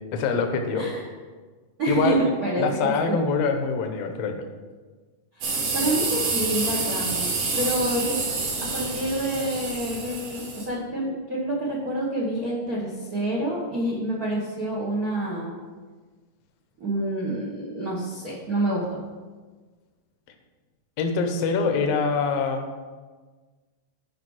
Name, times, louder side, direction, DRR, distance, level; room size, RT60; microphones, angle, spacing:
voice 1, 0.1-0.9 1.9-2.2 2.6-4.4 21.0-22.7, left 5 dB, 70° left, 5 dB, 1.7 m, -24 dB
voice 2, 0.7-1.1 1.8-3.2 5.4-8.2 8.4-15.6 16.8-19.0, right 1 dB, 55° right, -4 dB, 1.0 m, -28 dB
sound 1, 5.4-10.6, right 3 dB, 75° right, 3.1 m, -28 dB
11.0 x 5.1 x 4.8 m, 1.4 s
omnidirectional pair, 3.6 m